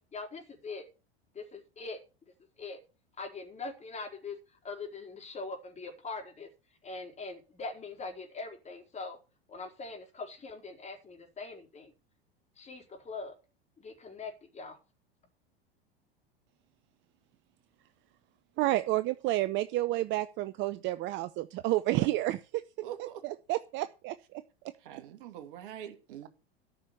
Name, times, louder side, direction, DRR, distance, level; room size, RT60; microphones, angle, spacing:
voice 1, 0.1-0.8 1.4-2.0 2.6-2.8 3.2-4.4 4.6-6.5 6.8-9.2 9.5-11.9 12.6-13.3 13.8-14.8, left 3 dB, 20° left, 3 dB, 4.3 m, -42 dB
voice 2, 18.6-22.6 23.0-24.4, right 16 dB, 40° right, 13 dB, 0.8 m, -30 dB
voice 3, 22.8-23.2 24.8-26.3, right 11 dB, 55° right, 8 dB, 2.5 m, -44 dB
13.5 x 6.3 x 6.8 m, 0.32 s
figure-of-eight pair, 85°, 31 cm